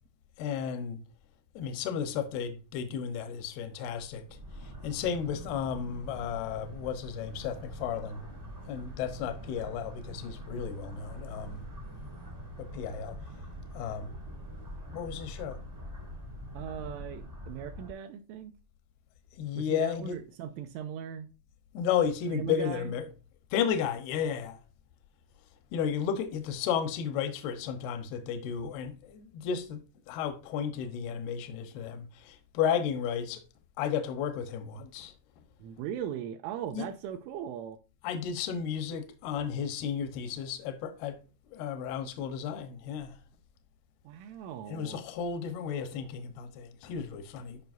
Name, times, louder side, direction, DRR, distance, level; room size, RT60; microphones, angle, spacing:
voice 1, 0.4-1.0 1.5-4.2 4.6-8.3 8.7-11.7 12.6-13.2 13.7-14.1 14.9-15.6 19.4-20.2 21.7-23.1 23.5-24.6 25.7-29.8 30.1-33.4 33.8-35.1 36.7-36.9 38.0-41.2 41.5-43.2 44.7-47.6, left 8 dB, 80° left, 2.3 m, -33 dB
sound 1, 3.9-17.9, equal, 45° right, 0.7 m, -44 dB
voice 2, 16.5-18.5 19.5-21.3 22.3-22.9 35.6-37.8 44.0-45.0, right 9 dB, 85° right, 2.9 m, -39 dB
12.0 x 5.7 x 2.6 m
omnidirectional pair, 5.9 m